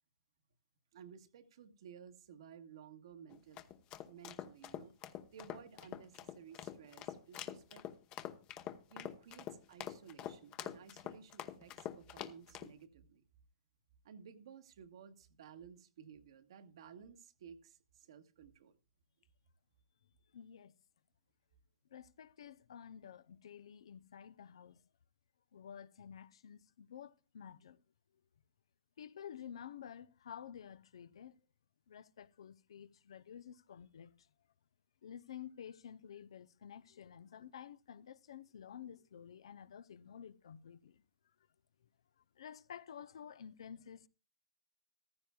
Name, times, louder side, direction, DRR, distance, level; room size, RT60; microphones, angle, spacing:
voice 1, 0.9-3.6 4.0-4.9 5.3-7.8 8.9-13.2 14.0-18.8, right 7 dB, 65° right, 1.5 m, -56 dB
sound 1, 3.3-12.7, left 11 dB, 35° left, 1.0 m, -46 dB
voice 2, 20.3-20.7 21.9-24.8 25.5-27.8 29.0-31.4 31.9-34.1 35.0-41.0 42.4-44.1, left 8 dB, 75° left, 0.7 m, -51 dB
15.0 x 13.5 x 2.3 m
hypercardioid pair, 125°, 3 cm